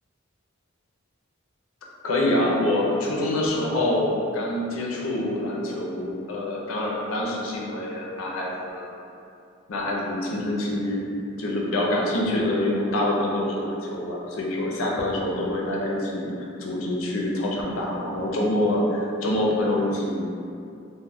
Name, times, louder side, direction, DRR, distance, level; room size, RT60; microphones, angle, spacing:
voice 1, 2.0-8.9 9.7-11.0 11.4-16.3 16.6-20.3, left 1 dB, 75° left, -2 dB, 0.5 m, -26 dB
2.2 x 2.1 x 3.3 m, 2.6 s
head